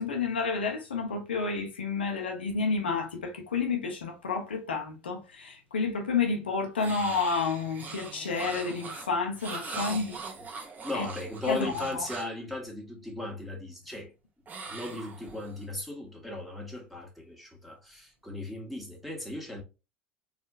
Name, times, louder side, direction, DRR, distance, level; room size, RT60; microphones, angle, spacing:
voice 1, 0.0-10.2 10.9-11.1 11.5-12.1, left 4 dB, 85° left, 1.0 m, -30 dB
sound 1, 6.8-12.4 14.5-15.6, right 4 dB, 30° right, 1.2 m, -41 dB
voice 2, 10.8-14.1 14.7-19.6, left 2 dB, ahead, 1.7 m, -37 dB
4.2 x 3.5 x 2.5 m
hypercardioid pair, 75°, 5 cm